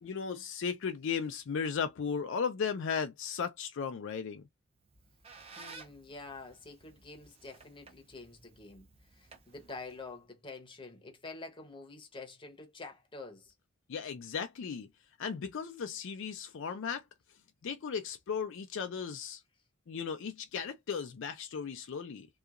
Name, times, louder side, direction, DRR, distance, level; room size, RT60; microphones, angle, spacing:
voice 1, 0.0-4.4 13.9-14.9 15.2-17.0 17.6-19.4 19.9-22.3, left 6 dB, 65° left, 0.4 m, -36 dB
Squeak, 4.7-10.2, right 3 dB, 30° right, 0.6 m, -55 dB
voice 2, 5.6-8.9 9.1-13.5, left 3 dB, 25° left, 0.8 m, -47 dB
2.8 x 2.3 x 2.4 m
head